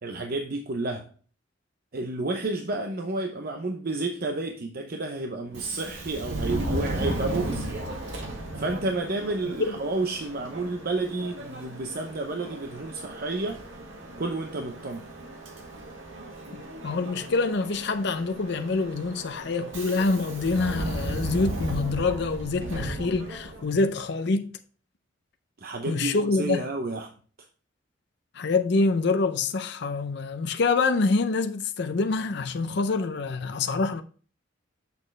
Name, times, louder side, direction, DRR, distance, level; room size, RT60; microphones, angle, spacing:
voice 1, 0.0-1.1 1.9-8.0 8.6-13.6 14.2-15.1 25.6-27.1, right 2 dB, 50° right, 0.7 m, -31 dB
Subway metro underground, 5.5-23.8, right 1 dB, 80° right, 1.9 m, -35 dB
voice 2, 16.8-24.5 25.9-26.7 28.3-34.0, left 3 dB, 65° left, 0.5 m, -26 dB
6.9 x 6.4 x 3.3 m
head